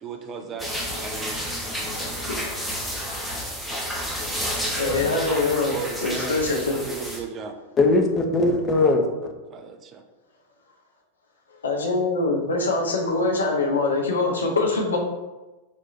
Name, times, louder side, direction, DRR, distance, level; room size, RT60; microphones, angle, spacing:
voice 1, 0.0-0.7 0.9-1.4 1.7-2.3 5.7-6.4 6.7-7.6 9.5-10.0, right 5 dB, 30° right, 5 dB, 0.5 m, -36 dB
sound 1, 0.6-7.2, equal, ahead, 0.9 m, -30 dB
voice 2, 4.8-6.8 11.6-15.0, left 3 dB, 70° left, 0 dB, 0.9 m, -23 dB
voice 3, 7.8-9.3, left 2 dB, 25° left, 4 dB, 0.7 m, -20 dB
4.6 x 4.3 x 2.6 m, 1.1 s
figure-of-eight pair, 90°, 0 cm